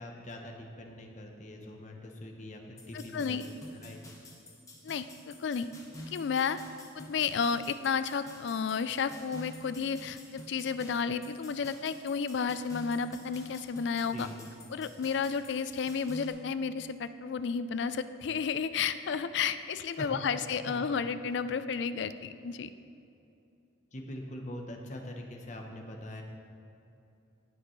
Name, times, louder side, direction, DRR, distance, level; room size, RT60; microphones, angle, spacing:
voice 1, 0.0-4.0 14.1-14.4 20.0-20.9 23.9-26.2, left 1 dB, 35° left, 2 dB, 0.9 m, -43 dB
sound 1, 2.8-16.3, left 1 dB, 15° left, 1.2 m, -49 dB
voice 2, 2.9-3.4 4.8-5.7 6.1-6.6 6.9-14.3 14.7-22.7, left 6 dB, 60° left, 12 dB, 0.4 m, -32 dB
17.0 x 6.6 x 3.2 m, 2.7 s
head